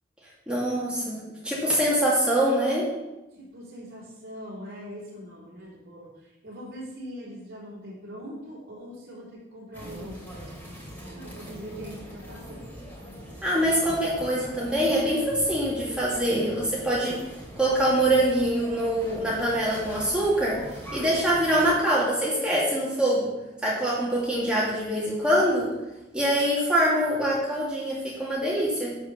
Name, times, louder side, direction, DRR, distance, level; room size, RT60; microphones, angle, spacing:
voice 1, 0.5-1.2 1.4-2.9 13.4-17.2 17.6-20.6 20.9-23.3 23.6-25.7 26.1-29.0, right 1 dB, 5° right, -7 dB, 2.1 m, -24 dB
voice 2, 3.3-10.5 11.0-12.7, equal, 50° right, -7 dB, 3.7 m, -42 dB
sound 1, 9.7-21.8, equal, 10° left, 2.8 m, -42 dB
11.0 x 5.0 x 6.8 m, 1.0 s
head